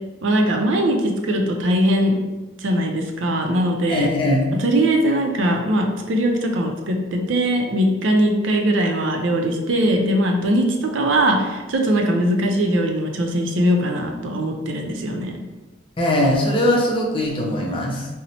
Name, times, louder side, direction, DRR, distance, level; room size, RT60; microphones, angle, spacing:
voice 1, 0.2-2.2 2.6-4.1 4.6-15.4, right 1 dB, 85° right, 3 dB, 0.5 m, -20 dB
voice 2, 3.9-4.5 16.0-18.1, left 1 dB, 25° left, -1 dB, 0.5 m, -20 dB
4.0 x 2.0 x 2.8 m, 1.2 s
head